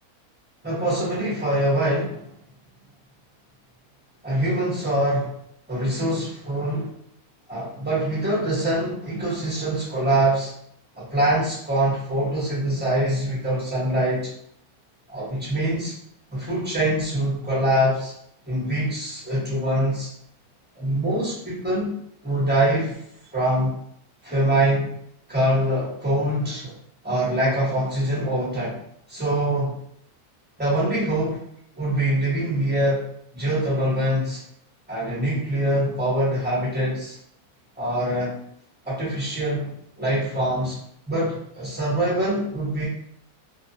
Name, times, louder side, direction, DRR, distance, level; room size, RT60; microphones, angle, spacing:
voice 1, 0.6-2.3 4.2-5.3 5.7-6.9 7.5-10.5 10.9-14.3 15.1-15.9 16.3-18.1 18.5-20.1 20.7-22.0 22.2-23.0 23.3-23.7 24.2-24.9 25.3-26.7 27.0-28.8 29.1-29.7 30.6-31.4 31.7-33.0 33.3-34.4 34.9-37.2 37.8-38.4 38.8-40.8 41.1-42.9, right 1 dB, 10° right, -8 dB, 0.7 m, -24 dB
2.5 x 2.3 x 2.6 m, 0.69 s
omnidirectional pair, 1.6 m